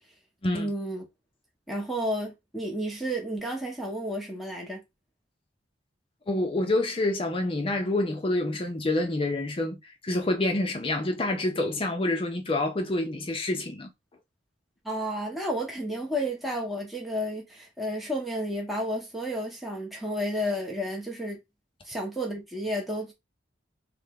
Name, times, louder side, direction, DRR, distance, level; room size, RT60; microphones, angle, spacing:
voice 1, 0.5-1.1 1.7-4.8 14.8-21.4 21.8-23.1, equal, ahead, 0.7 m, -31 dB
voice 2, 6.3-13.9, left 2 dB, 30° left, 0.5 m, -27 dB
3.4 x 2.0 x 3.4 m
head